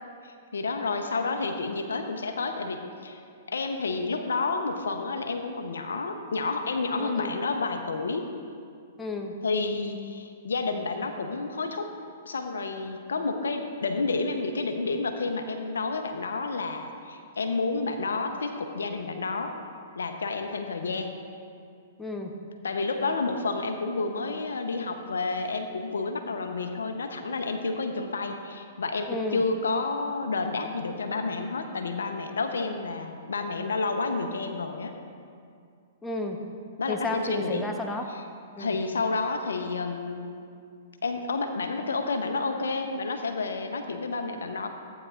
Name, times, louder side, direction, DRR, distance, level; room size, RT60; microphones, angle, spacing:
voice 1, 0.2-3.2 3.5-8.3 9.4-11.9 12.2-19.5 20.0-21.2 22.6-35.0 36.8-37.7 38.1-38.2 38.6-40.4 41.0-44.7, left 3 dB, 85° left, 6 dB, 0.8 m, -30 dB
voice 2, 7.0-7.3 9.0-9.3 22.0-22.3 29.1-29.4 36.0-36.4 36.9-38.1 38.6-38.8, left 2 dB, 10° left, 2 dB, 0.9 m, -32 dB
14.5 x 9.1 x 2.5 m, 2.3 s
hypercardioid pair, 125°, 0 cm